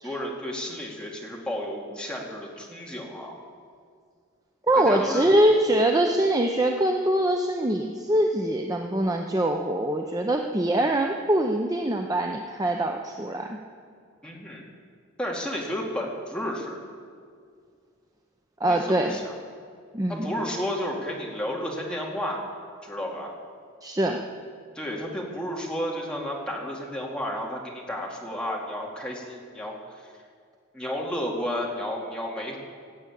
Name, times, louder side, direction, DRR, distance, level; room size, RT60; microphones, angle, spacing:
voice 1, 0.0-3.4 4.8-5.4 14.2-14.7 15.2-16.8 18.6-19.3 20.1-22.5 22.8-23.3 24.7-30.1 30.7-32.6, equal, 5° left, -2 dB, 2.2 m, -32 dB
voice 2, 4.7-13.6 18.6-19.2 19.9-20.3 23.8-24.2, right 1 dB, 15° right, 3 dB, 0.6 m, -23 dB
18.0 x 7.9 x 8.5 m, 2.2 s
head